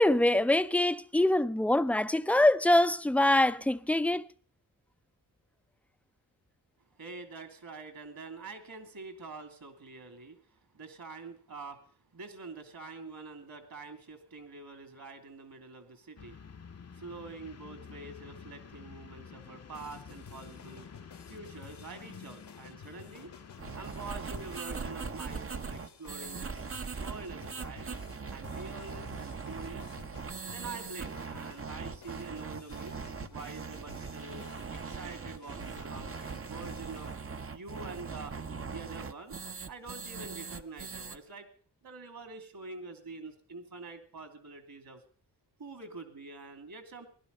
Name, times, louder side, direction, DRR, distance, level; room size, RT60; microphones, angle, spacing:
voice 1, 0.0-4.2, left 1 dB, 5° left, 0.6 m, -24 dB
voice 2, 7.0-16.7 16.9-20.9 21.3-23.3 23.7-26.6 27.0-27.9 28.3-29.9 30.5-33.0 33.3-34.4 34.7-37.1 37.5-38.4 38.7-39.3 39.7-41.5 41.8-45.0 45.6-47.1, right 3 dB, 60° right, 2.8 m, -46 dB
sound 1, 16.2-24.9, left 6 dB, 40° left, 0.9 m, -50 dB
sound 2, 19.7-37.1, left 7 dB, 80° left, 1.9 m, -54 dB
sound 3, 23.6-41.2, right 5 dB, 35° right, 0.9 m, -40 dB
17.5 x 11.5 x 5.4 m
cardioid pair, 50°, 40 cm